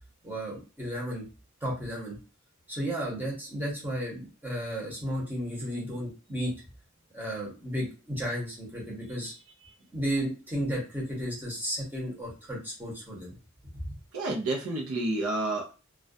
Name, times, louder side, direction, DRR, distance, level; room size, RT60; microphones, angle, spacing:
voice 1, 0.2-1.3 1.6-2.2 2.7-6.5 7.1-9.3 9.9-13.3 13.7-14.0, equal, 10° right, -4 dB, 0.8 m, -33 dB
voice 2, 14.1-15.7, right 2 dB, 90° right, 0 dB, 0.6 m, -29 dB
2.3 x 2.2 x 2.5 m, 0.32 s
head